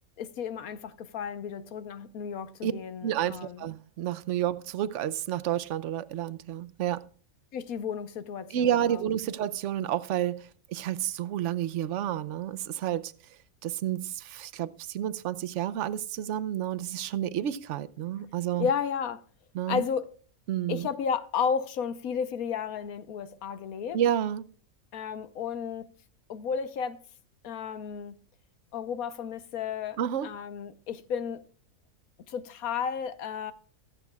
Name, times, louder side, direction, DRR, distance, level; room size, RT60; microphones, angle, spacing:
voice 1, 0.2-3.6 7.5-9.0 18.6-19.2 19.7-20.1 20.7-24.0 24.9-25.9 26.3-27.0 27.4-28.2 28.7-31.4 32.3-33.5, left 7 dB, 85° left, 1.3 m, -33 dB
voice 2, 3.0-7.1 8.5-13.1 13.6-18.7 19.5-19.8 20.5-20.9 23.9-24.4 30.0-30.3, right 11 dB, 65° right, 1.0 m, -30 dB
23.5 x 8.3 x 2.3 m
omnidirectional pair, 1.5 m